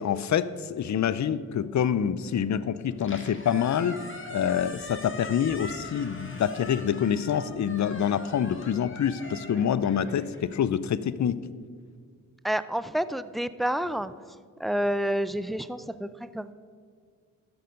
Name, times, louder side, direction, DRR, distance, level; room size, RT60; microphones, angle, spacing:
voice 1, 0.0-4.0 4.3-11.4, left 8 dB, 50° left, 16 dB, 0.6 m, -26 dB
Squeak, 2.9-11.1, left 2 dB, 35° left, 2.2 m, -43 dB
voice 2, 12.4-14.1 14.6-16.5, right 1 dB, ahead, 14 dB, 0.5 m, -29 dB
13.0 x 6.8 x 5.3 m, 2.1 s
supercardioid pair, 45°, 37 cm